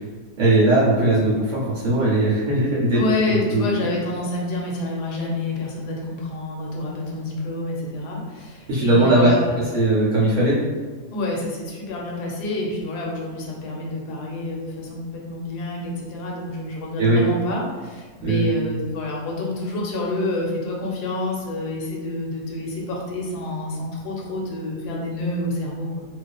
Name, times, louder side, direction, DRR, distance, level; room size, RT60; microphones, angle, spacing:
voice 1, 0.4-3.0 3.3-3.6 8.7-9.3 9.7-10.6 17.0-17.2 18.2-18.5, right 2 dB, 65° right, -7 dB, 0.8 m, -19 dB
voice 2, 2.9-9.7 11.1-26.0, left 2 dB, 85° left, -2 dB, 1.2 m, -28 dB
2.4 x 2.4 x 2.2 m, 1.4 s
omnidirectional pair, 1.7 m